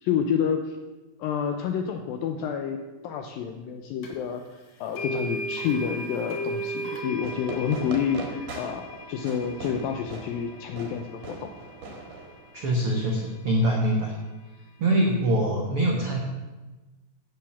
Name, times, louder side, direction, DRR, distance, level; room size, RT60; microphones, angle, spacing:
voice 1, 0.0-0.8 1.2-4.4 4.8-11.5, left 7 dB, 80° left, 5 dB, 2.1 m, -29 dB
sound 1, 4.0-4.1 5.0-13.0, right 1 dB, 50° left, 2.4 m, -37 dB
Fireworks, 7.2-12.7, right 2 dB, 55° right, 2.3 m, -40 dB
voice 2, 12.5-14.1 14.8-16.2, right 1 dB, 80° right, 0 dB, 1.2 m, -24 dB
10.5 x 8.0 x 7.2 m, 1.2 s
omnidirectional pair, 4.9 m